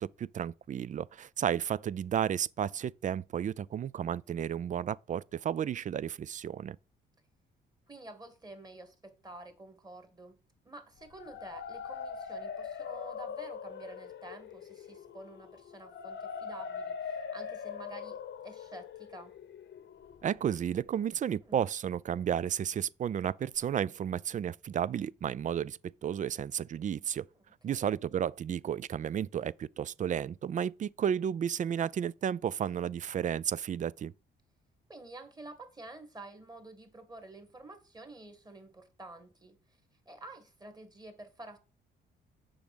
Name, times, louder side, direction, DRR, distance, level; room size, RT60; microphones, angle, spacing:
voice 1, 0.0-6.8 20.2-27.3 27.6-34.1, right 9 dB, 40° right, 0.4 m, -32 dB
voice 2, 7.9-19.3 21.4-21.6 27.7-27.8 34.9-39.6 40.1-41.6, right 2 dB, 20° right, 2.0 m, -49 dB
sound 1, 11.0-20.8, left 6 dB, 65° left, 0.9 m, -42 dB
6.9 x 5.2 x 6.1 m
cardioid pair, 90°, 20 cm